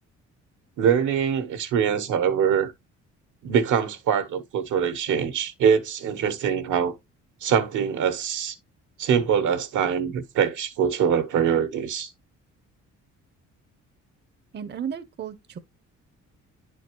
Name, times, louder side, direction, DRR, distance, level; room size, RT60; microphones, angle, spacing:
voice 1, 0.8-2.7 3.4-6.9 7.4-8.6 9.0-12.1, right 7 dB, 80° right, 1.2 m, -23 dB
voice 2, 14.5-15.6, right 8 dB, 35° right, 0.6 m, -34 dB
10.0 x 4.4 x 2.9 m
cardioid pair, 90°, 30 cm